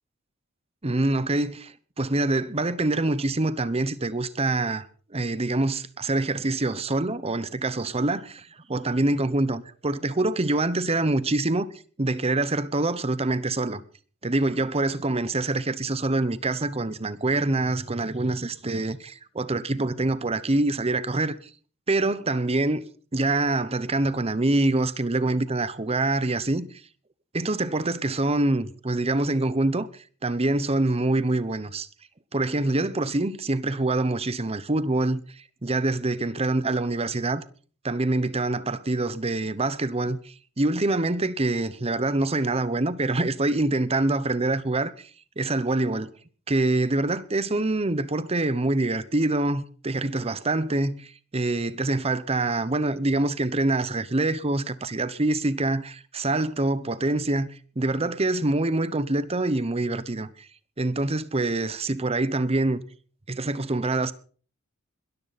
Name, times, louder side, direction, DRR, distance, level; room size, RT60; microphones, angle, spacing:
voice 1, 0.8-4.9 5.1-11.7 12.0-13.8 14.2-21.4 21.9-22.8 23.1-26.7 27.3-29.9 30.2-31.9 32.3-35.2 35.6-37.4 37.8-45.1 45.4-46.1 46.5-57.5 57.8-60.5 60.8-62.8 63.3-64.1, right 2 dB, 30° right, 0.9 m, -25 dB
21.5 x 14.0 x 4.2 m
head